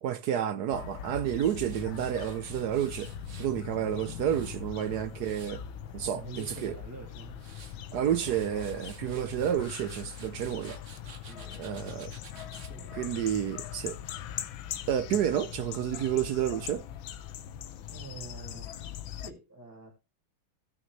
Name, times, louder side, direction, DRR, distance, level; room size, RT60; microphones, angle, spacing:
voice 1, 0.0-3.1 3.4-5.6 5.9-6.7 7.9-10.8 11.6-12.1 12.9-14.0 14.9-16.9, right 10 dB, 70° right, 0.9 m, -30 dB
sound 1, 0.7-19.3, left 9 dB, 75° left, 1.6 m, -41 dB
Tools, 1.4-3.5 4.0-5.7 6.1-6.7 7.2-7.8 8.2-12.7, right 5 dB, 40° right, 1.4 m, -53 dB
voice 2, 5.8-7.5 11.0-11.9 12.3-13.1 17.9-18.7 19.1-19.9, right 3 dB, 10° right, 2.4 m, -47 dB
17.0 x 6.1 x 3.1 m
omnidirectional pair, 2.3 m